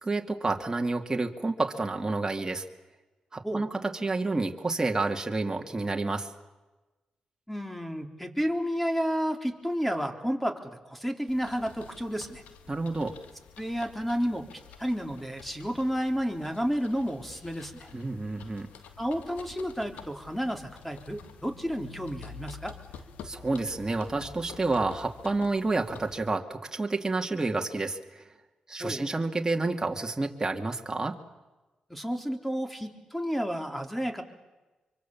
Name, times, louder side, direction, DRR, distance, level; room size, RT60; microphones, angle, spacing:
voice 1, 0.0-2.6 3.3-6.3 12.7-13.1 17.9-18.7 23.2-28.2 28.7-31.2, right 3 dB, 25° right, 3 dB, 2.4 m, -29 dB
voice 2, 7.5-12.4 13.6-14.5 14.8-17.9 19.0-22.7 28.8-29.0 31.9-34.2, equal, 5° left, 5 dB, 3.9 m, -31 dB
sound 1, 11.3-26.3, left 6 dB, 85° left, 1.8 m, -49 dB
25.0 x 24.5 x 7.3 m, 1.2 s
supercardioid pair, 45°, 2 cm